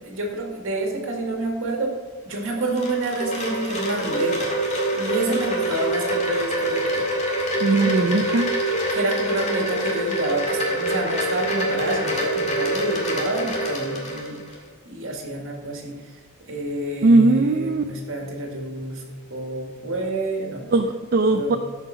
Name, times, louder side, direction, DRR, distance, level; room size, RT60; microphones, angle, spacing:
voice 1, 0.0-1.9 2.3-4.5 5.0-7.0 8.9-14.4 14.8-15.9 16.5-19.0 19.3-20.6 21.3-21.6, right 2 dB, 65° right, 1 dB, 2.2 m, -28 dB
Wind chime, 2.3-14.6, right 1 dB, 35° left, 2.1 m, -25 dB
voice 2, 7.6-8.5 17.0-17.8 20.7-21.6, right 2 dB, 45° right, 6 dB, 0.5 m, -19 dB
12.0 x 5.8 x 5.8 m, 1.4 s
head